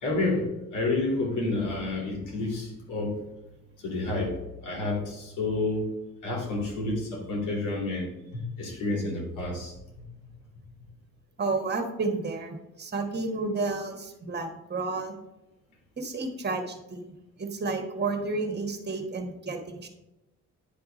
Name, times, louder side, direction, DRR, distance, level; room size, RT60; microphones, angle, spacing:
voice 1, 0.0-3.2 3.8-5.9 6.2-10.1, left 2 dB, 85° left, -2 dB, 2.7 m, -30 dB
voice 2, 11.4-15.1 16.0-17.1 17.4-19.9, right 3 dB, 35° right, 5 dB, 1.4 m, -31 dB
9.9 x 3.4 x 5.1 m, 0.95 s
cardioid pair, 90°, 30 cm